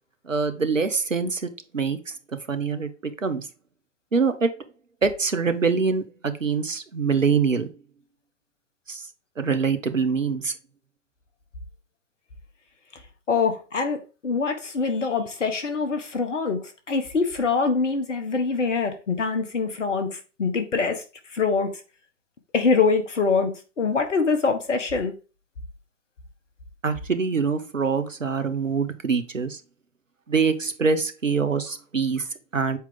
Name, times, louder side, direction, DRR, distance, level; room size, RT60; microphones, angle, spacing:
voice 1, 0.2-2.1 2.5-3.5 4.1-4.5 5.0-7.7 8.9-9.1 9.4-10.5 26.8-29.6 30.3-32.8, right 5 dB, 85° right, 1.0 m, -24 dB
voice 2, 13.3-21.0 21.3-21.8 22.5-25.1, left 4 dB, 70° left, 1.5 m, -24 dB
7.3 x 4.5 x 3.7 m
figure-of-eight pair, 105°, 37 cm